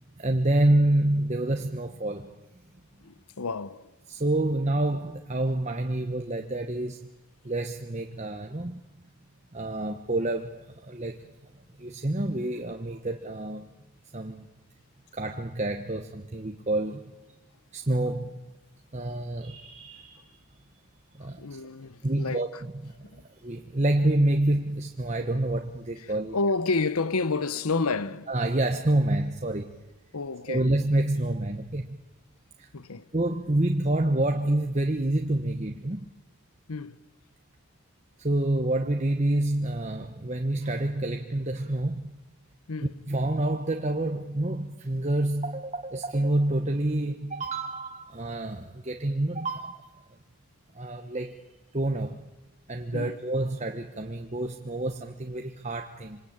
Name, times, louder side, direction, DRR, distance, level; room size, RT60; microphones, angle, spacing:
voice 1, 0.2-2.3 4.1-7.1 7.4-8.8 9.5-11.2 11.8-13.7 14.1-14.5 15.1-17.1 17.7-18.4 18.9-20.3 21.1-21.6 22.0-23.0 23.4-26.4 28.3-29.8 30.5-32.0 32.6-32.7 33.1-36.1 38.2-42.2 43.1-49.9 50.7-51.5 51.7-52.3 52.7-56.2, right 1 dB, 30° right, 1.1 m, -28 dB
voice 2, 3.0-3.9 21.4-22.6 23.0-23.2 26.3-28.3 30.1-30.7 32.7-33.1 36.7-37.0 42.7-42.9 52.9-53.2, left 3 dB, 80° left, 1.0 m, -30 dB
26.5 x 25.5 x 8.8 m
head